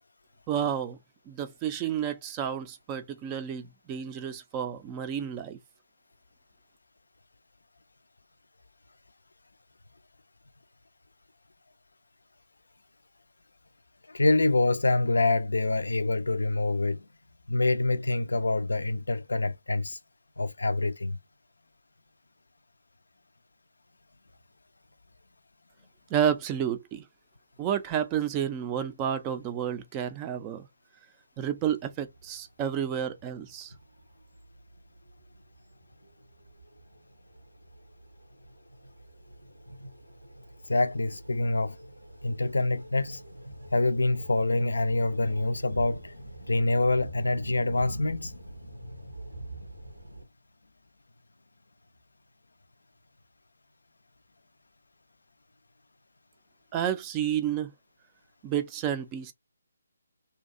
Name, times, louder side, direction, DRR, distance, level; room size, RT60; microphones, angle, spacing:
voice 1, 0.5-1.0 1.3-5.6 26.1-27.0 27.6-30.7 31.4-33.7 56.7-57.7 58.4-59.3, right 9 dB, 20° right, 0.4 m, -30 dB
voice 2, 14.1-17.0 17.5-20.0 20.4-21.2 40.7-41.8 42.2-43.2 43.7-48.4, left 2 dB, 70° left, 0.3 m, -26 dB
sound 1, 31.6-50.3, right 1 dB, 90° right, 0.8 m, -46 dB
2.6 x 2.2 x 2.5 m
figure-of-eight pair, 145°, 0 cm